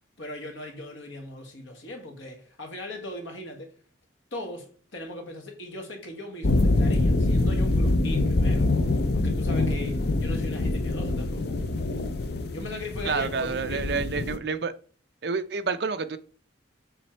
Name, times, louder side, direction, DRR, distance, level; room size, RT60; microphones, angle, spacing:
voice 1, 0.2-3.7 4.3-8.7 9.1-11.6 12.5-13.9, left 1 dB, 75° left, 1.7 m, -39 dB
sound 1, 6.4-14.4, left 2 dB, 55° left, 0.5 m, -25 dB
voice 2, 13.0-14.7 15.2-16.2, right 5 dB, 55° right, 0.5 m, -29 dB
7.1 x 3.3 x 4.4 m
head